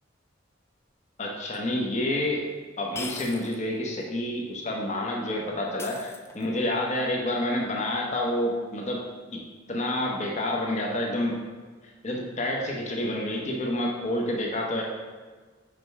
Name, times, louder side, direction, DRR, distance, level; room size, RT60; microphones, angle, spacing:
voice 1, 1.2-2.5 2.8-9.0 9.3-9.4 9.7-11.4 12.0-14.8, left 1 dB, 35° left, -1 dB, 0.9 m, -28 dB
sound 1, 1.5-1.6 2.9-3.7 4.0-4.1 5.8-6.7, left 3 dB, 15° left, 0.3 m, -40 dB
5.1 x 4.7 x 5.3 m, 1.5 s
head